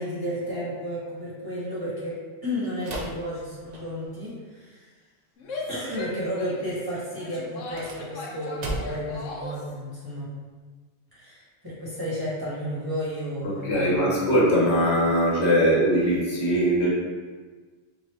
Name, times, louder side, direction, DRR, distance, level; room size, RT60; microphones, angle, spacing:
voice 1, 0.0-4.9 5.7-10.3 11.1-14.3, equal, 20° right, -10 dB, 1.2 m, -32 dB
sound 1, 2.8-4.2 7.5-9.2, right 1 dB, 45° right, 0.6 m, -36 dB
Female speech woman speaking / Yell, 5.4-9.7, left 2 dB, 90° left, 1.0 m, -38 dB
voice 2, 13.6-16.9, equal, 65° left, -5 dB, 1.3 m, -21 dB
4.8 x 2.6 x 3.3 m, 1.4 s
omnidirectional pair, 1.2 m